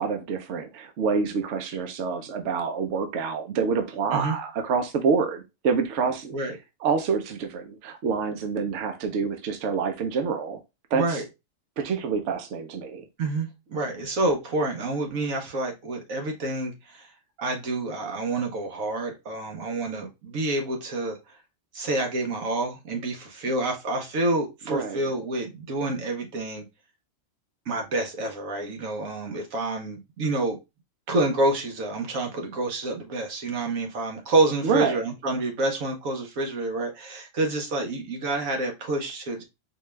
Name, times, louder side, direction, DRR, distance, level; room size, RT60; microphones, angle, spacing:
voice 1, 0.0-6.3 6.8-10.6 10.9-11.2 11.8-13.0 24.7-25.0 34.6-35.0, right 5 dB, 65° right, 0.9 m, -27 dB
voice 2, 10.9-11.2 13.2-17.1 17.4-21.2 21.7-26.6 27.7-30.6 31.1-39.4, right 2 dB, 85° right, 1.4 m, -28 dB
4.5 x 2.3 x 3.2 m
omnidirectional pair, 1.4 m